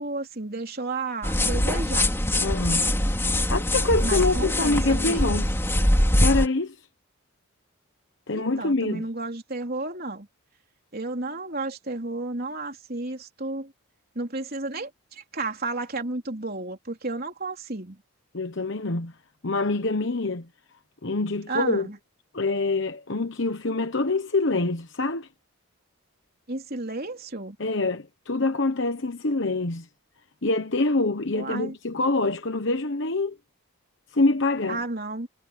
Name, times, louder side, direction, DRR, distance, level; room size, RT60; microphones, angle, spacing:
voice 1, 0.0-2.1 4.0-5.3 8.3-10.3 10.9-13.7 14.2-18.0 21.5-22.0 26.5-27.6 31.3-31.7 34.7-35.3, right 2 dB, 45° right, 3.9 m, -32 dB
sound 1, 1.2-6.5, left 1 dB, 10° left, 3.1 m, -23 dB
voice 2, 2.4-2.9 3.5-5.5 6.2-6.8 8.3-9.0 18.3-19.1 19.4-20.5 21.0-21.9 22.3-25.3 27.6-29.9 30.4-33.4 34.1-34.8, left 2 dB, 55° left, 1.1 m, -25 dB
head